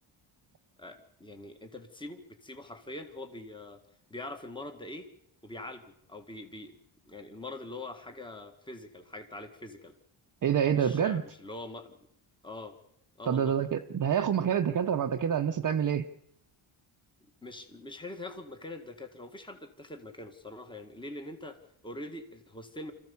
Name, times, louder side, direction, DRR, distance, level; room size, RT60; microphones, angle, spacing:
voice 1, 0.8-3.8 4.1-5.1 5.4-6.8 7.0-9.9 10.7-12.1 12.4-12.8 13.2-13.6 17.4-22.9, left 2 dB, 10° left, 6 dB, 1.8 m, -43 dB
voice 2, 10.4-11.2 13.3-16.1, right 8 dB, 40° right, 5 dB, 0.8 m, -27 dB
26.0 x 14.5 x 7.0 m, 0.77 s
cardioid pair, 120°, 48 cm